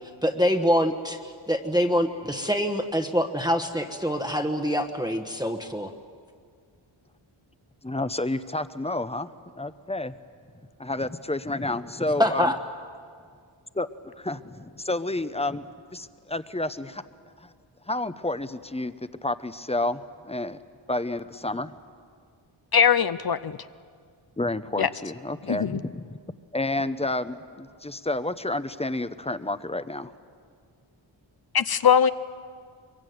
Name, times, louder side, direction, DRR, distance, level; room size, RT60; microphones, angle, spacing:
voice 1, 0.2-5.9 12.2-12.6, equal, 10° right, 4 dB, 1.2 m, -25 dB
voice 2, 7.8-10.1 10.8-12.5 13.7-13.9 14.2-17.0 17.4-17.5 17.9-18.9 19.2-20.6 20.9-21.8 24.4-26.2 26.5-30.1, left 2 dB, 15° left, 13 dB, 0.8 m, -30 dB
voice 3, 22.7-23.6 24.8-24.9 25.5-25.8 31.5-32.1, left 8 dB, 50° left, 13 dB, 0.7 m, -21 dB
24.0 x 23.0 x 9.4 m, 2.1 s
wide cardioid pair, 100°, 48 cm